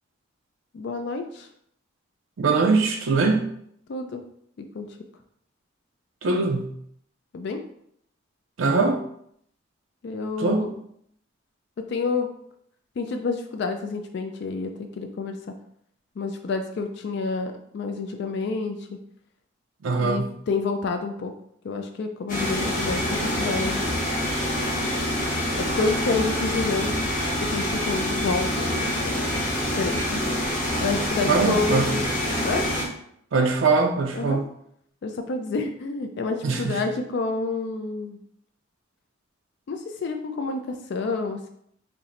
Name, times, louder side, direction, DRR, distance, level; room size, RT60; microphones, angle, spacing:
voice 1, 0.7-1.5 3.9-4.2 4.6-5.0 7.3-7.6 10.0-10.7 11.8-12.3 13.0-15.4 16.2-19.0 20.0-21.3 21.6-23.8 25.5-26.9 27.4-29.2 29.8-30.4 30.8-32.1 32.4-32.7 34.1-34.4 35.0-38.2 39.7-41.5, left 4 dB, 55° left, 6 dB, 0.3 m, -29 dB
voice 2, 2.4-3.5 6.2-6.7 8.6-9.0 10.4-10.8 19.8-20.3 31.3-31.9 33.3-34.4 36.4-36.8, right 4 dB, 75° right, 3 dB, 0.5 m, -22 dB
sound 1, 22.3-32.8, left 1 dB, 40° left, 0.9 m, -26 dB
4.3 x 2.0 x 3.7 m, 0.70 s
head